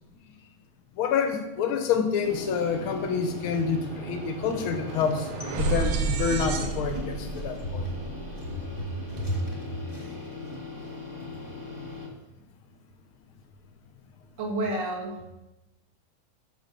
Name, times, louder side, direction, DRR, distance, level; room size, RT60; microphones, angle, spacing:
voice 1, 1.0-5.3 5.6-7.9, left 6 dB, 70° left, 7 dB, 1.3 m, -27 dB
sound 1, 2.2-12.1, left 2 dB, 15° right, 0.8 m, -39 dB
sound 2, 2.4-2.6 2.9-9.1, right 4 dB, 65° right, 1.8 m, -33 dB
voice 2, 8.8-9.4 9.7-9.8 14.4-15.3, right 1 dB, 45° right, 2 dB, 1.6 m, -31 dB
12.0 x 4.5 x 6.8 m, 0.98 s
omnidirectional pair, 3.5 m